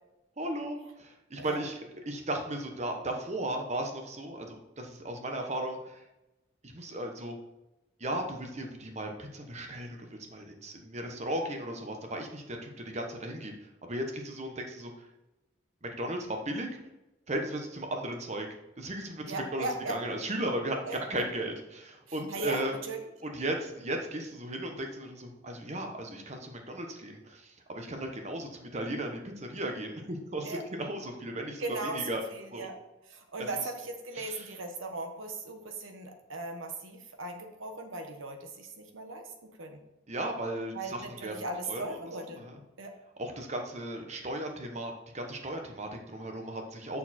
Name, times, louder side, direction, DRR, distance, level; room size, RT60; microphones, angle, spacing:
voice 1, 0.4-6.0 6.7-7.3 8.0-13.5 13.8-14.9 15.8-16.7 17.3-18.5 18.8-22.8 23.2-32.2 32.5-32.7 33.4-33.7 34.1-34.5 40.1-42.6 43.2-47.0, right 1 dB, 35° right, 3 dB, 1.1 m, -36 dB
voice 2, 19.3-20.0 20.8-21.0 22.3-23.0 30.4-30.6 31.6-32.0 32.3-32.8 33.1-39.2 39.6-39.8 40.7-42.4 42.8-42.9, right 2 dB, 90° right, 5 dB, 1.2 m, -38 dB
6.9 x 6.5 x 4.3 m, 0.97 s
head